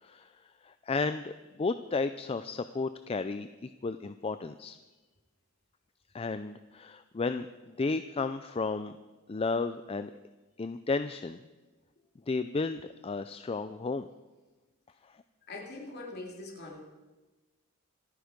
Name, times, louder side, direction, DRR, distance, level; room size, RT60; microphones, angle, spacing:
voice 1, 0.0-4.8 6.1-7.5 7.8-8.9 9.3-10.1 10.6-11.4 12.3-14.1 15.1-15.2, left 3 dB, 25° left, 11 dB, 0.4 m, -33 dB
voice 2, 15.5-16.8, left 2 dB, 45° left, -2 dB, 3.3 m, -42 dB
26.0 x 9.5 x 5.2 m, 1.2 s
head